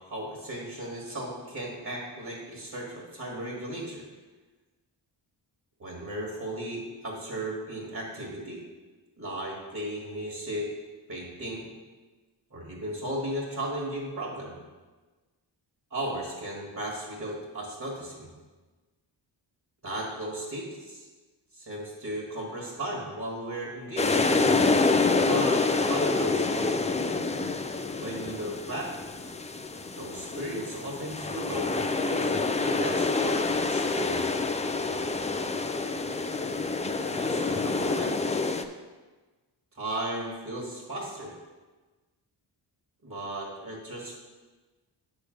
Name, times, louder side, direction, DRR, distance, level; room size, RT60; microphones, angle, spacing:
voice 1, 0.1-4.0 5.8-8.6 9.2-10.7 11.1-11.6 12.5-14.6 15.9-18.3 19.8-21.1 21.5-24.3 25.2-26.8 28.0-28.9 29.9-34.4 37.1-38.2 39.7-41.4 43.0-44.2, right 1 dB, 40° right, -3 dB, 1.7 m, -35 dB
sound 1, 24.0-38.6, left 3 dB, 15° left, 0.3 m, -27 dB
8.3 x 3.3 x 6.3 m, 1.3 s
wide cardioid pair, 95°, 44 cm